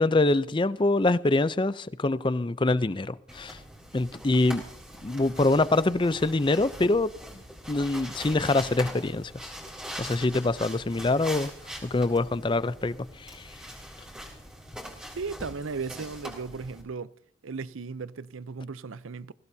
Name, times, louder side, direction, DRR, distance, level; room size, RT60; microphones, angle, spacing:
voice 1, 0.0-3.6 3.9-4.6 5.0-7.1 7.7-9.5 10.0-11.5 11.8-13.4, left 2 dB, 25° left, 0.5 m, -25 dB
sound 1, 3.3-16.8, equal, 5° right, 3.7 m, -42 dB
voice 2, 15.2-17.1 17.4-19.3, right 4 dB, 80° right, 0.6 m, -36 dB
21.0 x 16.5 x 2.7 m
head